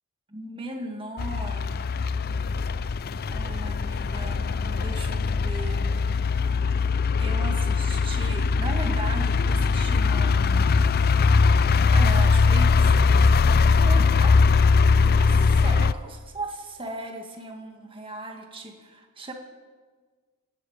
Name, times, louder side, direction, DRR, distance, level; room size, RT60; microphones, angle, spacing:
voice 1, 0.3-1.9 3.3-6.2 7.2-10.7 11.9-14.4 15.0-19.3, right 2 dB, 25° right, 3 dB, 2.0 m, -37 dB
sound 1, 1.2-15.9, left 4 dB, 45° left, 0.4 m, -21 dB
18.0 x 15.5 x 5.1 m, 1.5 s
head